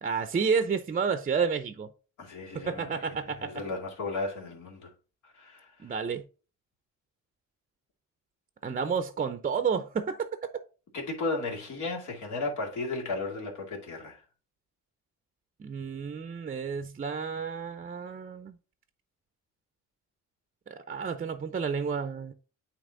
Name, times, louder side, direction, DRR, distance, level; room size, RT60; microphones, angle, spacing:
voice 1, 0.0-1.9 2.5-3.6 5.8-6.2 8.6-10.3 15.6-18.6 20.7-22.3, right 6 dB, 30° right, 0.6 m, -30 dB
voice 2, 2.2-3.0 3.4-4.9 5.2-5.9 10.9-14.2, left 3 dB, 75° left, 2.3 m, -35 dB
8.8 x 3.0 x 3.9 m
cardioid pair, 90°, 30 cm